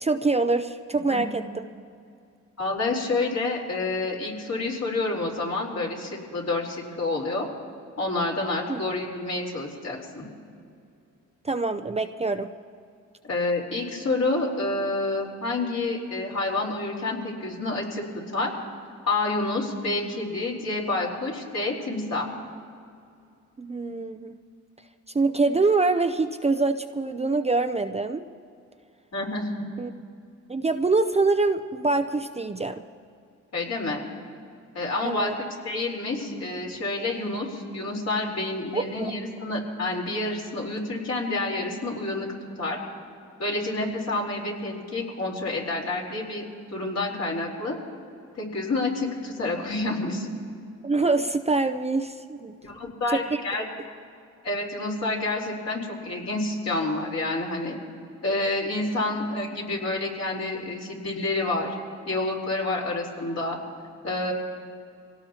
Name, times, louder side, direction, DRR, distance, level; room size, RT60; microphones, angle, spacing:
voice 1, 0.0-1.6 8.7-8.8 11.4-12.5 23.6-24.3 25.1-28.2 29.8-29.9 30.5-32.8 35.0-35.3 38.7-39.1 50.8-52.6 53.1-53.4, right 3 dB, 20° right, 7 dB, 0.6 m, -25 dB
voice 2, 2.6-7.5 8.0-10.2 13.2-18.5 19.1-22.3 29.1-29.5 33.5-34.0 34.7-35.3 35.6-42.3 42.6-42.8 43.4-46.4 46.7-47.8 48.4-50.3 52.6-53.7 54.4-57.8 58.2-61.7 62.1-63.6 64.0-64.3, left 2 dB, 55° left, -2 dB, 3.9 m, -28 dB
25.0 x 17.5 x 2.9 m, 2.4 s
cardioid pair, 70°, 31 cm